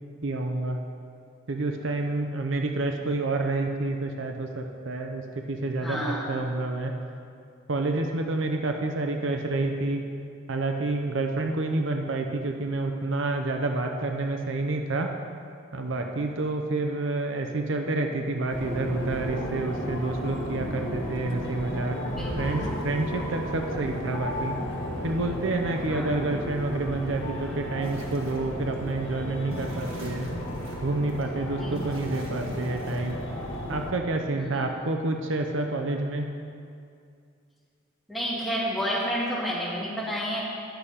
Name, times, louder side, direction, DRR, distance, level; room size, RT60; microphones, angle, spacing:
voice 1, 0.2-0.8 1.5-6.9 7.7-10.0 10.5-15.1 15.7-22.0 22.4-24.6 25.0-30.3 30.8-33.2 33.7-36.3, right 2 dB, 65° right, 4 dB, 0.7 m, -28 dB
voice 2, 5.8-6.4 22.1-22.7 25.9-26.2 31.6-32.1 34.4-34.5 38.1-40.4, equal, ahead, -7 dB, 2.0 m, -31 dB
sound 1, 18.5-33.9, equal, 60° left, 1.5 m, -34 dB
sound 2, 27.8-28.4 28.7-28.8 29.5-31.2 31.7-33.5, right 1 dB, 85° right, 1.7 m, -42 dB
10.5 x 6.6 x 5.6 m, 2.4 s
head